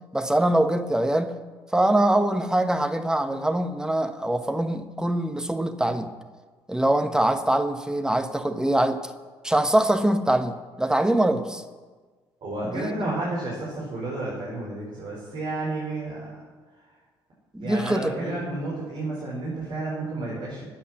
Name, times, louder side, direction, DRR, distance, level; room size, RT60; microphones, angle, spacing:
voice 1, 0.1-1.3 1.7-6.1 6.7-9.0 9.4-11.6 12.6-12.9 17.5-18.5, right 1 dB, 5° right, 7 dB, 1.2 m, -23 dB
voice 2, 12.4-16.4 17.6-20.7, right 2 dB, 45° right, -6 dB, 5.0 m, -31 dB
14.0 x 8.7 x 6.2 m, 1.4 s
figure-of-eight pair, 50°, 13 cm